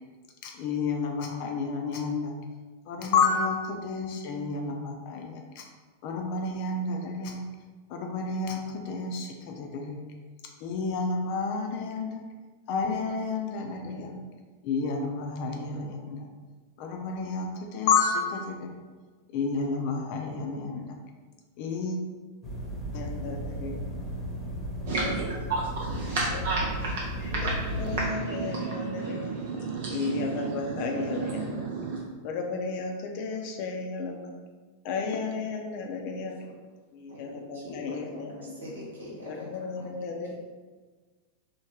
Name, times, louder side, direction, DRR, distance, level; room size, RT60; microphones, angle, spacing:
voice 1, 0.4-2.3 2.9-5.7 6.0-7.4 7.9-10.0 10.6-12.2 12.7-14.2 14.6-16.3 16.8-18.7 19.3-21.0 21.6-22.0 22.9-23.8 24.9-25.2 27.3-29.3 29.9-31.7 32.2-34.3 34.8-36.4 36.9-38.6 39.3-40.3, left 4 dB, 45° left, 2 dB, 0.5 m, -31 dB
sound 1, 22.4-28.1, equal, 10° left, 0.9 m, -34 dB
voice 2, 24.9-32.0, right 3 dB, 55° right, -2 dB, 0.4 m, -32 dB
voice 3, 35.0-35.3 36.2-36.5 37.1-39.5 39.8-40.3, left 1 dB, 70° right, -5 dB, 1.1 m, -44 dB
3.0 x 2.1 x 3.7 m, 1.4 s
figure-of-eight pair, 90°, 0 cm